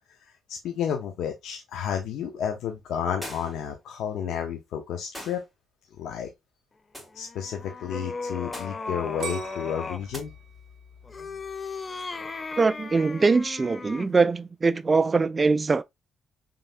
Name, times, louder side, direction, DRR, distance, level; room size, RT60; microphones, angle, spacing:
voice 1, 0.5-5.4 6.0-6.3 7.1-10.3, left 8 dB, 80° left, 0.8 m, -31 dB
sound 1, 3.2-3.7 5.1-5.5 6.9-7.2 8.5-8.9 10.1-10.3, equal, 10° left, 3.2 m, -40 dB
sound 2, 7.1-10.1 11.0-14.2, left 4 dB, 30° left, 0.5 m, -37 dB
sound 3, 9.2-12.1 12.6-13.1, right 7 dB, 65° right, 0.7 m, -40 dB
voice 2, 12.6-15.8, right 4 dB, 30° right, 0.3 m, -22 dB
5.6 x 3.5 x 2.6 m
cardioid pair, 90°, 0 cm